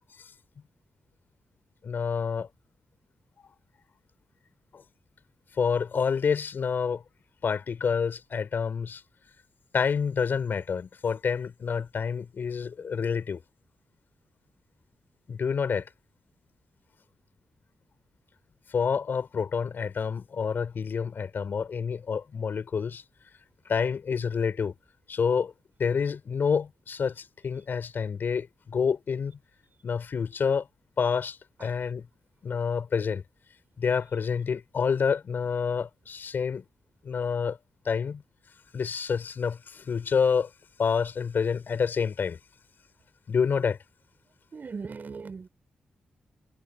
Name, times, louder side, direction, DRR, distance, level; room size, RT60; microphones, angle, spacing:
voice 1, 1.8-2.5 4.7-4.8 5.6-7.0 7.4-9.0 9.7-13.4 15.3-15.9 18.7-23.0 23.6-24.7 25.1-25.5 25.8-29.4 29.8-30.7 31.0-32.1 32.4-33.2 33.8-36.6 37.0-37.6 37.8-38.2 38.7-40.5 40.8-42.4 43.3-43.8, left 6 dB, 65° left, 6.7 m, -28 dB
voice 2, 44.5-45.5, right 5 dB, 55° right, 5.7 m, -38 dB
supercardioid pair, 45°, 4 cm